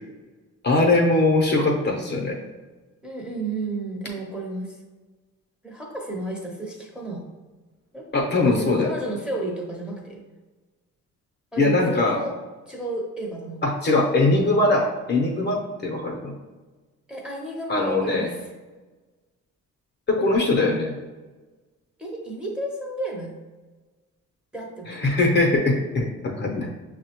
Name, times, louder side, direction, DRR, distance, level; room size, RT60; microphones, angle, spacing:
voice 1, 0.6-2.4 8.1-8.9 11.6-12.2 13.6-16.3 17.7-18.3 20.1-20.9 24.9-26.7, left 2 dB, 35° left, 0 dB, 0.7 m, -21 dB
voice 2, 3.0-4.7 5.6-7.2 7.9-8.1 8.3-10.2 11.5-12.3 12.7-13.7 17.1-18.3 22.0-23.4 24.5-25.1, right 2 dB, 5° right, -2 dB, 0.8 m, -32 dB
5.8 x 2.1 x 2.9 m, 1.2 s
cardioid pair, 90°, 30 cm